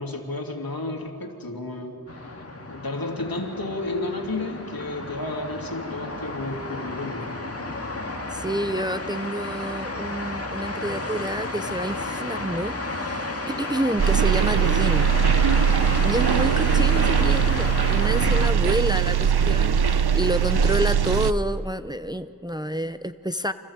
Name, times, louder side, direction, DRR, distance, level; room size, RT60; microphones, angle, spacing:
voice 1, 0.0-2.3 2.7-7.3 12.9-13.3 19.1-19.2, left 2 dB, 65° left, 3 dB, 3.0 m, -32 dB
sound 1, 2.1-18.5, left 2 dB, 40° left, 2.0 m, -32 dB
voice 2, 8.3-15.1 16.0-23.5, right 1 dB, 10° right, 11 dB, 0.7 m, -29 dB
sound 2, 14.0-21.3, right 8 dB, 80° right, 0.8 m, -20 dB
29.5 x 25.5 x 7.4 m, 2.5 s
wide cardioid pair, 55°, 38 cm